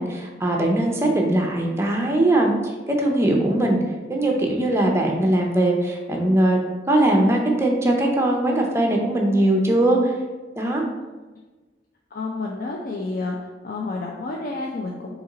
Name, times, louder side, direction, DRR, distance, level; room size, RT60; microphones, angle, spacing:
voice 1, 0.0-2.5 2.9-3.8 4.1-6.6 6.9-10.1 10.6-10.8, right 1 dB, 15° right, 1 dB, 0.5 m, -20 dB
voice 2, 12.1-13.4 13.6-15.2, left 3 dB, 50° left, -1 dB, 0.4 m, -30 dB
4.2 x 2.9 x 3.8 m, 1.2 s
head